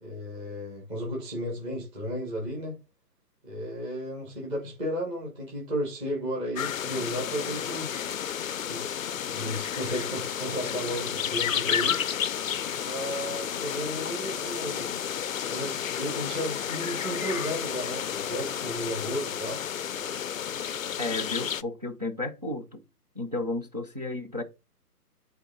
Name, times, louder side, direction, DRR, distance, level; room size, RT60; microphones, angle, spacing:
voice 1, 0.0-2.7 3.4-7.9 8.6-8.8 9.2-12.0 12.8-14.9 15.5-19.6, equal, 10° right, 1.4 m, -34 dB
sound 1, 6.6-21.6, left 8 dB, 60° left, 0.5 m, -31 dB
voice 2, 21.0-22.8 23.2-24.4, left 2 dB, 30° right, 0.5 m, -33 dB
8.7 x 3.5 x 3.7 m
hypercardioid pair, 160°, 48 cm